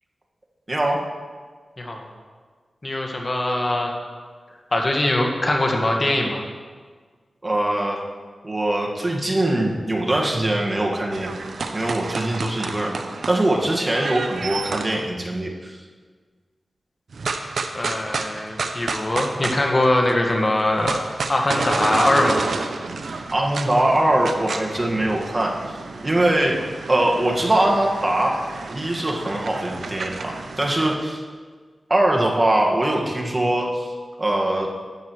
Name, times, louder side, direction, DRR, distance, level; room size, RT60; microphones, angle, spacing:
voice 1, 0.7-1.0 7.4-8.0 8.4-11.3 11.7-15.8 23.3-25.5 26.0-26.6 26.9-28.4 28.7-31.2 31.9-33.9 34.2-34.7, right 1 dB, 35° right, -1 dB, 1.7 m, -22 dB
voice 2, 2.8-3.9 4.7-6.4 17.7-21.0 21.3-22.4, left 1 dB, 40° left, 1 dB, 1.6 m, -22 dB
sound 1, 11.1-15.0 17.1-20.1 20.4-30.9, right 4 dB, 80° right, 0.6 m, -31 dB
12.0 x 9.5 x 3.1 m, 1.5 s
cardioid pair, 45°, 0 cm